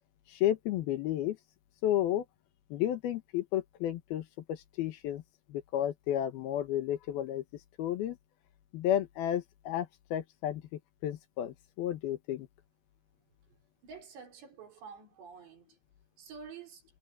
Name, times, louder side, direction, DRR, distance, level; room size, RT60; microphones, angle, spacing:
voice 1, 0.3-1.4 1.8-2.2 2.7-5.2 5.5-7.4 7.8-8.2 8.7-10.6 11.0-12.5, left 11 dB, 70° left, 2.9 m, -32 dB
voice 2, 13.8-15.8 16.2-16.8, right 6 dB, 90° right, 6.7 m, -49 dB
omnidirectional pair, 4.8 m